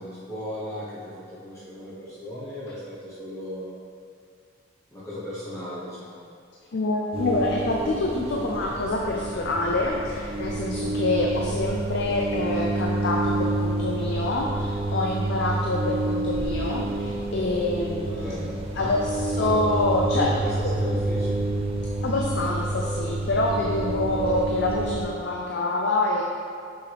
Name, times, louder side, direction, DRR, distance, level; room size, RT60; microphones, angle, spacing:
voice 1, 0.0-3.7 4.9-6.2 11.3-11.6 18.1-19.0 19.3-21.5 23.4-23.8, left 1 dB, 15° left, -10 dB, 1.0 m, -36 dB
voice 2, 6.7-18.3 18.8-20.3 20.6-20.7 22.0-26.2, left 2 dB, 55° left, -1 dB, 0.5 m, -26 dB
sound 1, 7.1-25.1, right 2 dB, 30° right, 0.7 m, -29 dB
6.4 x 5.5 x 3.4 m, 2.4 s
head